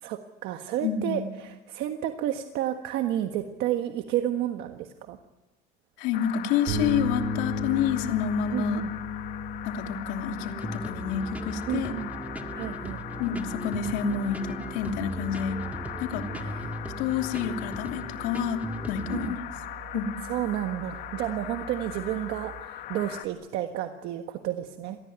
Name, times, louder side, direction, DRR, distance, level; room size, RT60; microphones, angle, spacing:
voice 1, 0.0-5.2 8.5-8.9 11.7-12.1 12.5-13.0 16.3-17.1 19.1-19.4 20.3-25.0, right 12 dB, 65° right, 6 dB, 1.5 m, -31 dB
voice 2, 0.8-1.2 6.0-8.8 9.6-11.9 13.2-15.6 16.0-16.2 17.0-19.4 19.9-20.1, left 7 dB, 85° left, 4 dB, 3.0 m, -29 dB
sound 1, 6.1-23.3, left 12 dB, 55° left, 2.0 m, -40 dB
sound 2, 6.7-22.6, left 1 dB, 80° right, 6.6 m, -38 dB
sound 3, 10.4-19.3, right 1 dB, 10° right, 1.7 m, -39 dB
26.5 x 19.5 x 9.4 m, 1.2 s
cardioid pair, 160°, 19 cm